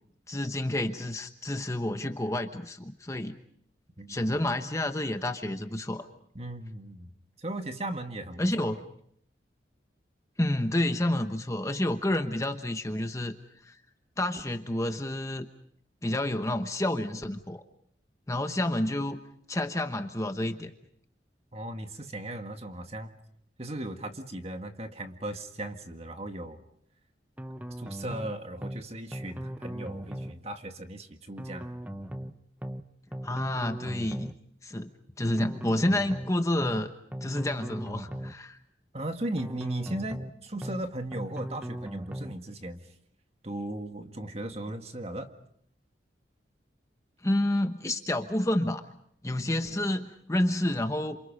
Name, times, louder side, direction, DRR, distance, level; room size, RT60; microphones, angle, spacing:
voice 1, 0.3-3.3 4.1-6.1 8.4-8.8 10.4-13.3 13.6-13.8 14.2-15.5 16.0-17.6 18.3-19.2 19.5-20.7 33.2-34.3 34.6-34.9 35.2-36.9 37.2-38.6 47.2-48.8 49.2-51.2, left 1 dB, 15° left, 7 dB, 1.1 m, -29 dB
voice 2, 4.0-4.4 6.4-8.8 21.5-23.2 23.6-26.6 27.8-31.7 38.9-42.9 43.4-45.3, right 1 dB, 35° right, 6 dB, 1.8 m, -37 dB
sound 1, 27.4-28.3 28.6-28.8 29.1-30.4 31.4-32.3 32.6-32.8 33.1-34.4 35.4-36.3 36.6-36.8 37.1-38.4 39.4-40.3 40.6-40.8 41.1-42.4, equal, 10° right, 0.9 m, -38 dB
29.0 x 27.0 x 5.2 m, 0.68 s
head